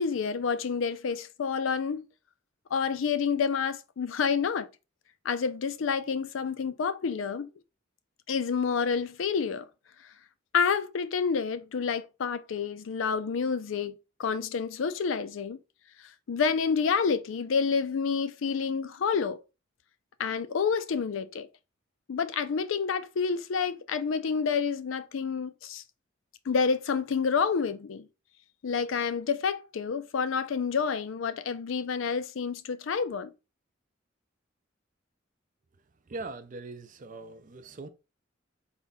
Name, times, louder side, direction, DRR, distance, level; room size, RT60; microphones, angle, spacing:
voice 1, 0.0-2.0 2.7-4.7 5.2-7.5 8.3-9.6 10.5-15.6 16.3-19.4 20.2-21.5 22.1-25.8 26.5-28.0 28.6-33.3, left 6 dB, 85° left, 0.4 m, -29 dB
voice 2, 36.1-37.9, right 3 dB, 45° right, 0.5 m, -41 dB
4.0 x 2.3 x 4.0 m
head